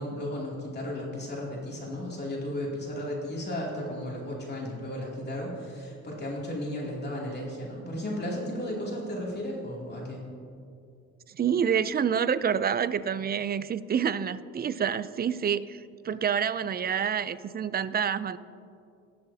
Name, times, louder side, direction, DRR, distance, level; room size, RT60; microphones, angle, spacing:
voice 1, 0.0-10.2, left 1 dB, 35° left, 2.8 m, -34 dB
voice 2, 11.3-18.4, right 7 dB, 30° right, 0.4 m, -28 dB
19.5 x 7.5 x 2.8 m
cardioid pair, 90°, 30 cm